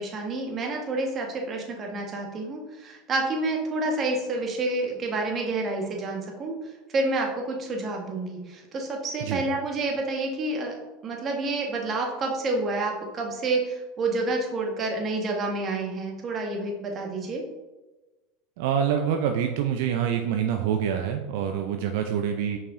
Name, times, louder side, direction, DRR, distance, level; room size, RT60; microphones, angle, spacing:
voice 1, 0.0-6.6 6.9-10.7 11.0-17.4, right 2 dB, 35° right, 1 dB, 1.4 m, -29 dB
voice 2, 18.6-22.6, right 8 dB, 70° right, 5 dB, 0.5 m, -26 dB
5.6 x 4.8 x 3.8 m, 1.1 s
hypercardioid pair, 100°, 0 cm